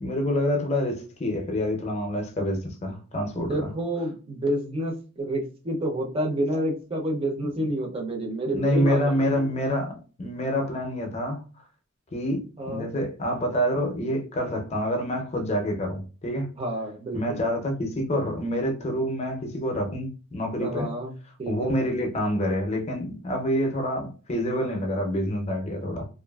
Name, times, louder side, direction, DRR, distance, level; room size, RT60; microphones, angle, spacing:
voice 1, 0.0-3.7 7.5-7.6 8.5-11.4 12.1-16.5 17.1-20.9 21.5-26.1, equal, 30° left, 0.5 m, -27 dB
voice 2, 3.4-9.4 12.6-12.9 16.6-17.4 20.6-21.1 21.4-21.7, right 1 dB, 25° right, 0.5 m, -29 dB
2.6 x 2.4 x 2.3 m
head